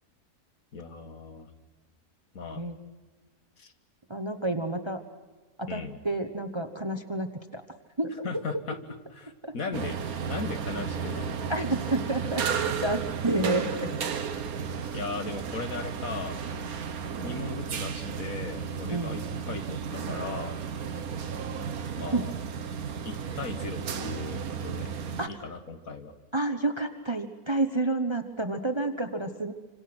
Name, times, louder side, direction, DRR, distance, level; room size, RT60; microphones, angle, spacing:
voice 1, 0.7-1.5 2.3-2.6 3.6-3.7 5.7-6.0 8.2-8.8 9.1-10.0 10.3-11.4 13.8-14.0 14.9-16.4 17.2-20.6 21.9-22.3 23.1-24.9 25.3-26.1, left 4 dB, 65° left, 7 dB, 2.0 m, -37 dB
voice 2, 4.1-5.0 5.6-7.6 8.0-8.1 9.4-9.5 11.5-13.9 18.9-19.2 22.1-22.3 25.2-25.3 26.3-29.5, right 2 dB, 20° right, 7 dB, 1.0 m, -29 dB
sound 1, 9.7-25.3, right 6 dB, 70° right, 1.6 m, -33 dB
27.0 x 26.0 x 6.2 m, 1.3 s
omnidirectional pair, 1.6 m